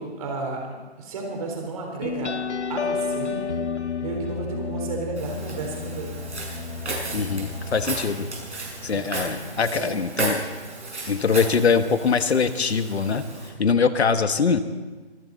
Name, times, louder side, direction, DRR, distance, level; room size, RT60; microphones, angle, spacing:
voice 1, 0.0-2.3 2.7-3.4 4.0-6.2 8.9-9.1 9.7-10.0, right 3 dB, 30° right, 1 dB, 4.0 m, -32 dB
sound 1, 2.0-9.2, left 5 dB, 90° left, 1.1 m, -32 dB
Walk footsteps, 5.2-13.5, right 2 dB, 85° right, 6.3 m, -34 dB
voice 2, 7.1-8.3 8.8-10.4 11.1-13.2 13.6-14.6, left 5 dB, 70° left, 10 dB, 1.4 m, -22 dB
24.5 x 14.0 x 4.0 m, 1.3 s
hypercardioid pair, 160°, 33 cm